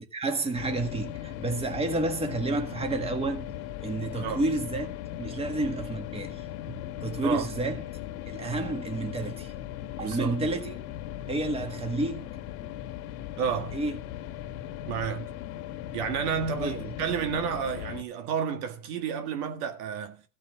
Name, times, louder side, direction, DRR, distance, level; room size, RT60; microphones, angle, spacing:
voice 1, 0.1-4.9 5.2-7.8 8.3-9.5 10.0-10.8 11.3-12.3 13.7-14.0 16.6-16.9, right 2 dB, 15° right, 1.8 m, -30 dB
sound 1, 0.5-18.0, left 12 dB, 70° left, 1.7 m, -38 dB
voice 2, 10.0-10.4 13.4-13.8 14.9-15.3 15.9-20.2, right 7 dB, 80° right, 1.9 m, -31 dB
15.0 x 5.9 x 7.2 m
supercardioid pair, 135°, 44 cm